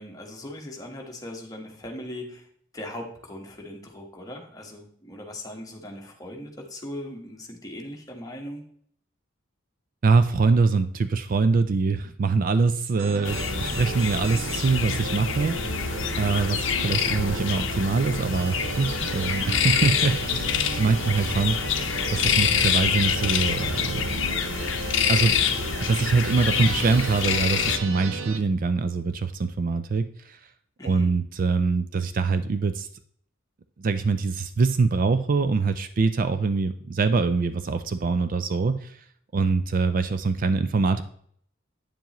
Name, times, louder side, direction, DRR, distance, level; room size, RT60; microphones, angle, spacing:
voice 1, 0.0-2.5 2.7-8.6 30.8-31.1, left 1 dB, 20° left, 1 dB, 1.2 m, -39 dB
voice 2, 10.0-24.2 25.1-25.3 25.8-30.4 30.8-32.9 33.8-39.0 39.3-41.0, right 4 dB, 45° right, 11 dB, 0.4 m, -24 dB
sound 1, 13.0-28.4, right 4 dB, 80° right, 0.7 m, -35 dB
sound 2, 13.2-27.8, left 7 dB, 65° left, 0.7 m, -26 dB
8.9 x 7.1 x 3.0 m, 0.62 s
head